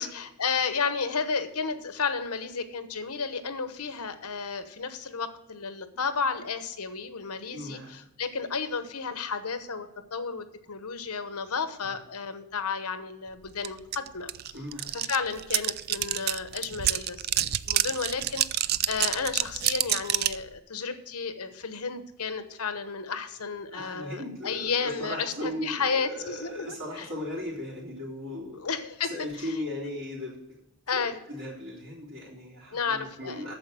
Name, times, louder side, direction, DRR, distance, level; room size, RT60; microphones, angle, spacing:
voice 1, 0.0-14.6 14.9-27.1 28.6-29.1 30.9-31.1 32.7-33.4, left 5 dB, 90° left, 10 dB, 1.1 m, -32 dB
voice 2, 7.5-8.0 11.8-12.0 14.5-14.9 23.7-28.6 29.0-30.4 30.9-33.5, left 1 dB, 60° right, -7 dB, 3.5 m, -37 dB
sound 1, 13.6-13.7 13.9-20.4, right 13 dB, 45° right, 0.3 m, -27 dB
9.0 x 7.1 x 7.6 m, 0.88 s
head